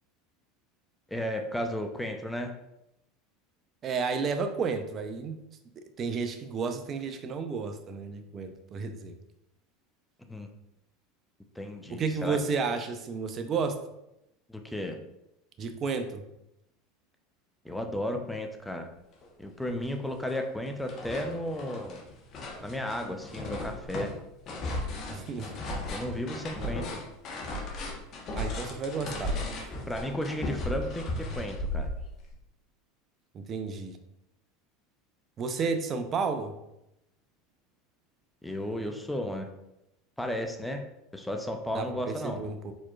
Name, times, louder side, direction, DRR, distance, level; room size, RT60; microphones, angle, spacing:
voice 1, 1.1-2.5 10.3-10.5 11.6-12.4 14.5-15.0 17.6-18.9 19.4-22.0 22.6-24.1 25.9-26.9 29.9-31.1 31.4-31.9 38.4-39.5 40.2-40.8 41.1-42.4, left 1 dB, 5° left, 4 dB, 0.6 m, -34 dB
voice 2, 3.8-5.4 6.0-9.1 11.9-13.8 15.6-16.2 25.1-25.5 26.6-26.8 28.3-29.7 33.3-34.0 35.4-36.6 41.7-42.7, right 5 dB, 40° right, 8 dB, 0.5 m, -32 dB
sound 1, 19.2-19.3 19.7-20.4 20.7-32.3, left 1 dB, 45° left, 1.1 m, -36 dB
4.3 x 4.3 x 2.4 m, 0.85 s
hypercardioid pair, 90°, 0 cm